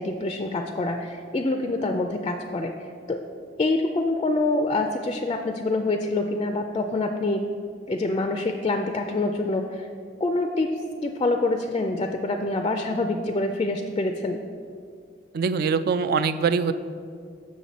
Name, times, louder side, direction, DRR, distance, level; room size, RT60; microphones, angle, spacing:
voice 1, 0.0-2.7 3.1-3.2 3.6-7.4 7.9-9.9 10.2-10.7 11.0-14.4, left 2 dB, 30° left, 5 dB, 0.3 m, -26 dB
voice 2, 15.3-16.7, right 5 dB, 55° right, 12 dB, 0.3 m, -23 dB
7.5 x 6.2 x 4.1 m, 2.3 s
head